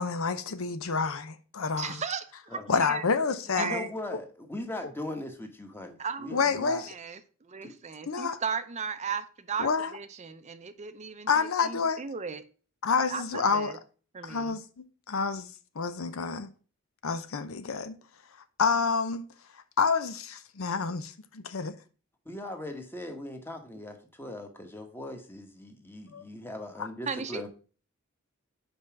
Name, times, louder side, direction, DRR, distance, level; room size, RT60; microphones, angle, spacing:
voice 1, 0.0-2.0 2.7-3.9 6.3-6.9 8.1-8.4 9.6-9.9 11.3-12.0 12.8-13.8 14.2-15.5 15.8-16.5 17.0-18.0 18.6-19.3 19.8-21.0 21.5-21.6 26.1-26.2 26.8-26.9, left 5 dB, 85° left, 0.7 m, -28 dB
voice 2, 1.8-3.0 3.5-3.9 6.0-11.3 11.6-12.4 13.1-13.8 14.1-14.6 27.1-27.5, right 6 dB, 35° right, 0.5 m, -36 dB
voice 3, 3.6-6.8 7.6-7.7 22.2-27.5, left 1 dB, 10° left, 1.1 m, -39 dB
5.4 x 5.0 x 5.7 m
head